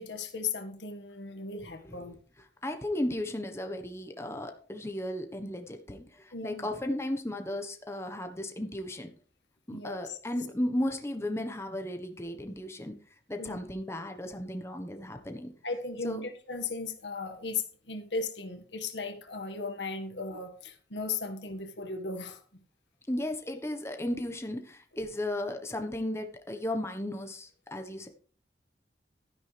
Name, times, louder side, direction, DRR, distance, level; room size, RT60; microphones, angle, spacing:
voice 1, 0.0-2.2 6.3-6.6 9.7-10.2 13.4-13.6 15.6-22.4, left 4 dB, 85° left, 6 dB, 1.8 m, -36 dB
voice 2, 1.8-9.1 9.7-12.9 13.3-15.5 16.0-16.2 23.1-28.1, left 1 dB, 15° left, 5 dB, 1.2 m, -35 dB
12.5 x 10.0 x 3.4 m, 0.42 s
head